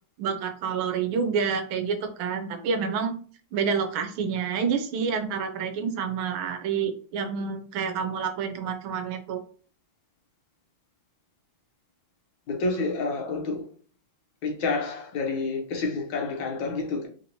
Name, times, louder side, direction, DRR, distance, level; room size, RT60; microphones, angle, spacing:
voice 1, 0.2-3.1 3.5-9.4, right 6 dB, 85° right, 1.5 m, -28 dB
voice 2, 12.5-13.6 14.4-17.1, left 3 dB, 75° left, 1.5 m, -29 dB
3.9 x 2.8 x 2.7 m
omnidirectional pair, 2.2 m